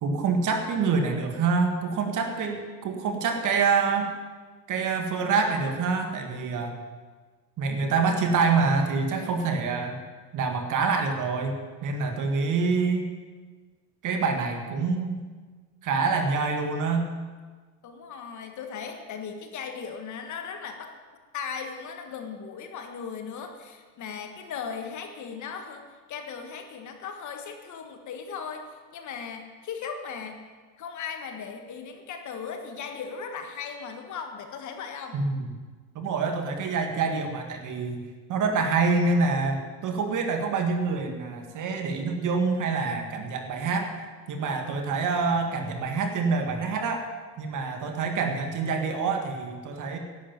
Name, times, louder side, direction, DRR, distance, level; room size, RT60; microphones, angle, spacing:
voice 1, 0.0-4.1 4.7-6.8 7.6-10.0 10.3-11.6 11.8-13.1 14.0-15.2 15.8-17.1 35.1-35.5 36.0-38.0 38.3-43.9 44.3-47.1 47.4-50.0, right 4 dB, 35° right, 4 dB, 2.0 m, -26 dB
voice 2, 17.8-20.9 21.3-30.4 30.8-35.2, left 6 dB, 35° left, 5 dB, 1.6 m, -37 dB
11.5 x 8.7 x 9.0 m, 1.4 s
supercardioid pair, 115°, 50 cm